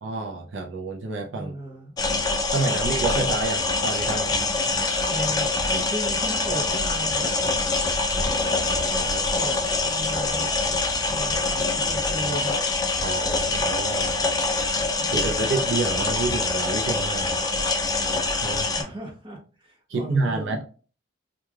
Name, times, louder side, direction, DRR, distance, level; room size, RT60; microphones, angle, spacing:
voice 1, 0.0-1.5 2.5-4.3 8.1-9.3 13.0-14.2 15.1-17.4 18.4-18.7 19.9-20.6, right 3 dB, 65° right, 1 dB, 0.4 m, -29 dB
voice 2, 1.3-1.9 5.1-7.3 9.0-10.5 11.1-12.5 15.0-15.5 18.8-20.6, right 1 dB, 25° right, 0 dB, 0.8 m, -36 dB
sound 1, 2.0-18.8, left 3 dB, 20° left, 0.3 m, -25 dB
3.1 x 2.3 x 2.3 m, 0.38 s
head